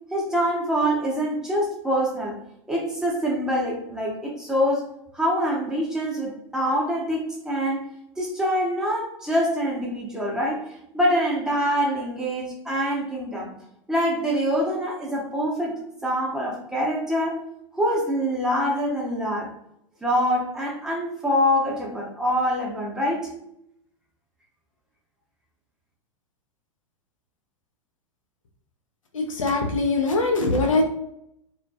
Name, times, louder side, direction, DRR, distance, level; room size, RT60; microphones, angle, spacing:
voice 1, 0.1-2.4 2.7-4.8 5.1-7.9 8.2-10.6 10.9-13.5 13.9-17.4 17.7-19.5 20.0-23.3, equal, 5° right, -4 dB, 0.7 m, -25 dB
voice 2, 29.1-30.8, left 3 dB, 75° left, 2 dB, 0.6 m, -22 dB
2.2 x 2.1 x 2.6 m, 0.76 s
figure-of-eight pair, 100°, 17 cm